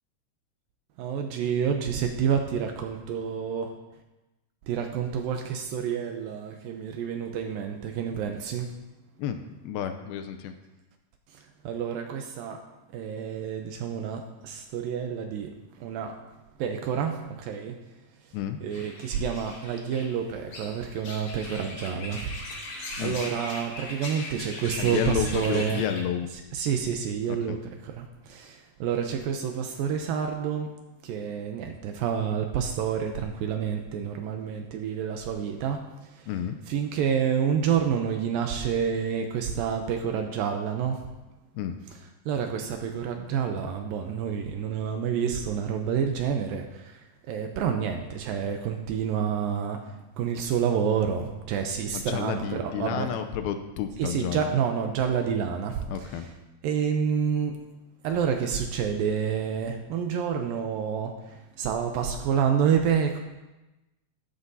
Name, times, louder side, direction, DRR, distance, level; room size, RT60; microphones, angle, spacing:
voice 1, 1.0-3.8 4.7-8.7 11.3-12.6 12.9-15.5 15.8-16.2 16.6-17.8 18.6-25.8 26.5-30.7 31.0-36.3 36.7-41.0 42.3-53.1 54.0-56.3 56.6-57.6 58.0-63.2, right 7 dB, 75° right, 4 dB, 2.2 m, -29 dB
voice 2, 9.6-10.5 18.3-18.6 23.0-23.2 24.8-26.3 27.3-27.6 36.3-36.6 41.5-41.7 51.9-54.5 55.9-56.3, left 9 dB, 85° left, 8 dB, 2.4 m, -31 dB
sound 1, 18.7-26.0, left 2 dB, 50° left, 3.3 m, -39 dB
14.0 x 11.5 x 2.7 m, 1.0 s
omnidirectional pair, 4.6 m